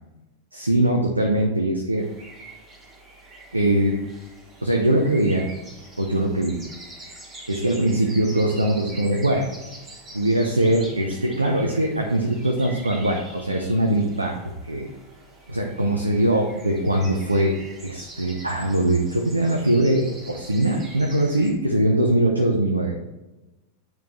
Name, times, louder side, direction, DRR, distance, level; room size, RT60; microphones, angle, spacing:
voice 1, 0.5-2.1 3.5-4.0 4.6-5.5 6.0-6.6 7.5-9.4 10.1-14.3 14.6-14.9 15.5-17.5 17.8-23.0, right 1 dB, 85° right, 1 dB, 0.8 m, -21 dB
sound 1, 2.0-21.5, right 2 dB, 25° right, 2.3 m, -44 dB
9.0 x 4.8 x 3.2 m, 1.1 s
figure-of-eight pair, 90°, 0 cm